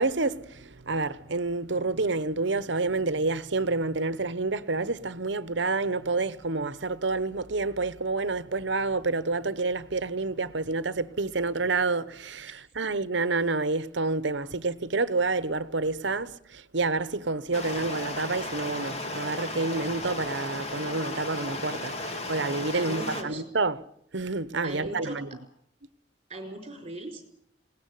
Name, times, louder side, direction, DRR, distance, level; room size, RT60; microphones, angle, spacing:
voice 1, 0.0-23.8 24.1-25.3, right 3 dB, 65° right, 1.0 m, -28 dB
Stream, 17.5-23.2, left 2 dB, 35° left, 2.6 m, -35 dB
voice 2, 22.7-23.4 24.6-25.4 26.3-27.4, right 1 dB, 30° right, 4.7 m, -39 dB
20.5 x 18.0 x 9.5 m
head